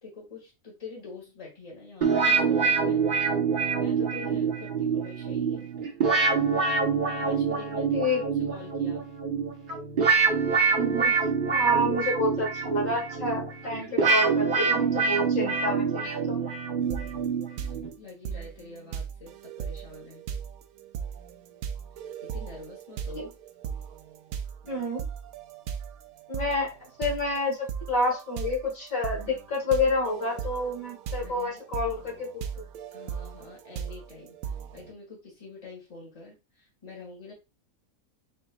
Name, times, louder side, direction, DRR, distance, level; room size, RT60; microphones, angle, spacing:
voice 1, 0.0-3.0 3.8-5.7 7.2-9.1 16.9-17.5 18.0-20.3 22.2-23.3 24.6-24.9 31.2-31.6 32.9-37.3, left 3 dB, 25° left, -2 dB, 1.9 m, -45 dB
sound 1, 2.0-17.9, right 5 dB, 40° right, 1.0 m, -26 dB
voice 2, 7.9-8.2 10.8-11.1 11.5-16.4 23.2-23.3 24.7-25.0 26.3-26.7 27.0-32.4, left 1 dB, 65° left, -2 dB, 2.0 m, -28 dB
sound 2, 16.9-17.3 17.6-34.9, right 7 dB, 80° right, 1.0 m, -38 dB
4.4 x 4.3 x 2.3 m, 0.27 s
omnidirectional pair, 1.5 m